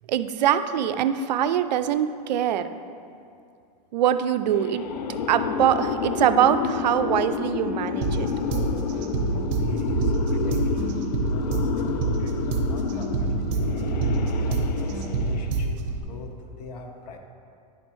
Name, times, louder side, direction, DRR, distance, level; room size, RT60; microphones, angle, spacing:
voice 1, 0.1-2.7 3.9-4.8 5.3-8.3, right 10 dB, 90° right, 11 dB, 0.4 m, -23 dB
sound 1, 4.6-15.7, left 7 dB, 85° left, 0.5 m, -30 dB
sound 2, 8.0-16.0, right 3 dB, 50° right, 0.9 m, -27 dB
voice 2, 9.3-10.9 11.3-14.0 14.5-17.2, left 3 dB, 70° left, 3 dB, 1.0 m, -42 dB
11.0 x 4.2 x 3.1 m, 2.4 s
supercardioid pair, 125°, 21 cm